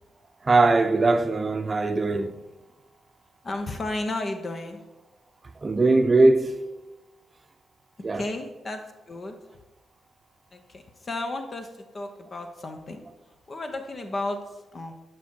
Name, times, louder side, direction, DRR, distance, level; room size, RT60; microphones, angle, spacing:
voice 1, 0.4-2.4 5.6-6.5 8.0-8.2, right 3 dB, 35° right, 0.7 m, -20 dB
voice 2, 3.4-4.8 8.1-9.4 10.5-13.0 13.5-14.9, left 2 dB, 45° left, 1.0 m, -33 dB
11.5 x 4.6 x 4.6 m
hypercardioid pair, 40°, 0 cm